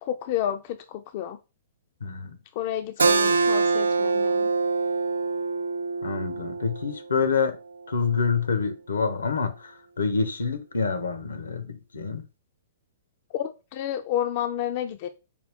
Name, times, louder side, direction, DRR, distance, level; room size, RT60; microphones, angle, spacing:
voice 1, 0.0-1.4 2.5-4.5 13.3-15.1, left 10 dB, 45° left, 0.4 m, -30 dB
voice 2, 2.0-2.4 6.0-7.6 7.9-9.7 10.0-12.2, left 5 dB, 85° left, 0.8 m, -27 dB
Keyboard (musical), 3.0-8.2, right 4 dB, 85° right, 0.4 m, -25 dB
5.0 x 2.4 x 3.4 m
hypercardioid pair, 125°, 0 cm